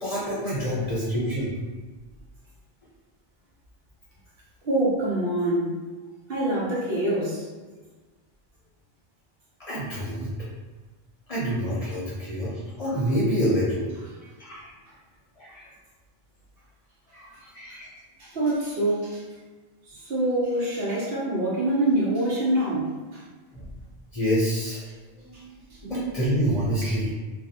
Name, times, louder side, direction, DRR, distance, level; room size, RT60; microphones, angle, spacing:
voice 1, 0.0-1.5 9.6-10.3 11.3-14.1 14.4-14.6 15.4-15.6 17.1-17.9 24.1-24.8 25.3-25.4 25.8-27.1, equal, 40° left, -8 dB, 0.7 m, -27 dB
voice 2, 4.6-5.7 6.3-7.4 18.2-19.2 19.9-23.2, right 1 dB, 65° right, -6 dB, 1.0 m, -25 dB
2.5 x 2.0 x 2.7 m, 1.3 s
omnidirectional pair, 1.1 m